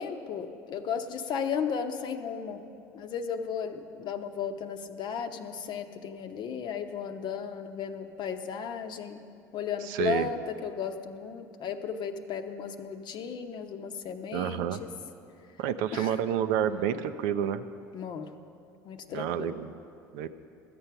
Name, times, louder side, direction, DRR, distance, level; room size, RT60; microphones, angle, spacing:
voice 1, 0.0-2.6 2.9-9.2 9.5-14.6 15.9-16.3 17.9-18.3 18.8-19.5, left 7 dB, 50° left, 7 dB, 0.8 m, -35 dB
voice 2, 9.8-10.3 14.3-14.8 15.6-17.7 19.1-19.7 20.1-20.3, right 9 dB, 70° right, 10 dB, 0.5 m, -29 dB
13.5 x 7.7 x 5.8 m, 2.6 s
hypercardioid pair, 75°, 10 cm